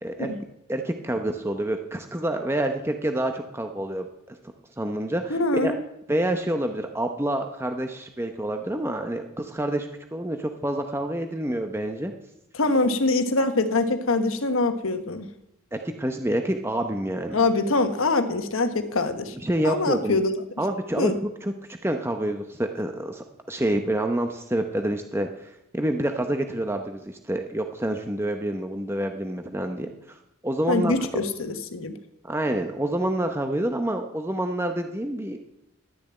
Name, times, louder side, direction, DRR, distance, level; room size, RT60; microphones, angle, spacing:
voice 1, 0.0-0.3 0.7-4.1 4.8-5.7 6.1-12.1 15.7-17.4 19.4-20.2 20.6-21.1 21.4-21.5 21.8-30.2 30.4-31.2 32.2-35.5, right 1 dB, 10° right, 5 dB, 0.8 m, -27 dB
voice 2, 5.3-5.8 12.5-15.3 17.3-19.4 19.6-20.4 21.0-21.1 30.7-31.9, left 2 dB, 85° left, 8 dB, 1.2 m, -24 dB
12.0 x 6.9 x 8.8 m, 0.82 s
head